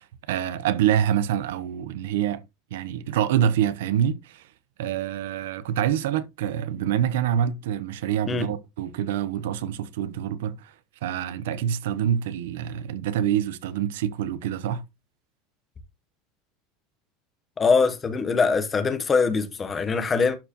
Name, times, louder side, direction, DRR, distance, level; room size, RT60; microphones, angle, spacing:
voice 1, 0.0-2.4 2.7-4.5 4.8-10.7 11.0-14.8, right 10 dB, 85° right, 0.8 m, -26 dB
voice 2, 17.6-20.4, left 4 dB, 15° left, 0.9 m, -22 dB
11.5 x 4.6 x 2.9 m
supercardioid pair, 170°, 0 cm